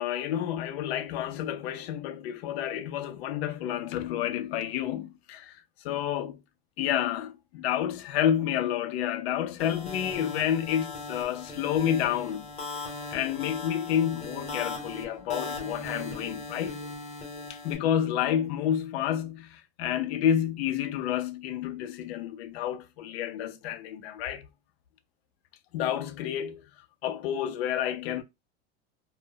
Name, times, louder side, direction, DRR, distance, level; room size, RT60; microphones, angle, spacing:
voice 1, 0.0-5.5 5.8-6.4 6.8-12.5 13.1-16.8 17.5-24.5 25.7-26.6 27.0-28.2, left 10 dB, 80° left, 0.5 m, -29 dB
sound 1, 9.6-17.7, left 3 dB, 20° left, 0.8 m, -39 dB
2.1 x 2.0 x 3.5 m
supercardioid pair, 165°, 31 cm